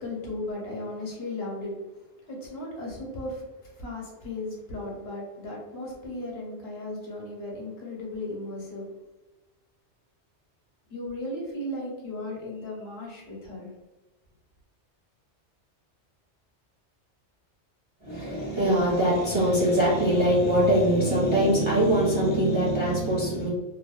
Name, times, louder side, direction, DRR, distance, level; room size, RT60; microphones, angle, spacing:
voice 1, 0.0-8.8 10.9-13.7, left 1 dB, 65° left, -3 dB, 1.0 m, -36 dB
voice 2, 18.0-23.5, equal, 35° right, -7 dB, 0.5 m, -22 dB
2.7 x 2.0 x 2.3 m, 1.1 s
omnidirectional pair, 1.2 m